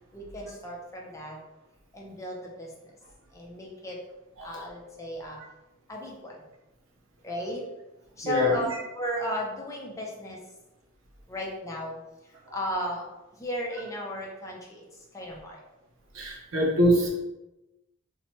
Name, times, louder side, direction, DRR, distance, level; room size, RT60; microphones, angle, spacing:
voice 1, 0.1-1.4 1.9-2.7 3.3-4.0 4.4-5.4 5.9-6.4 7.2-7.6 8.2-10.4 11.3-12.0 12.5-13.1 13.4-14.8 15.1-15.6, left 2 dB, 15° left, -2 dB, 0.5 m, -34 dB
voice 2, 8.2-8.6 16.1-17.1, right 1 dB, 85° right, -1 dB, 0.7 m, -24 dB
2.8 x 2.2 x 2.9 m, 0.99 s
head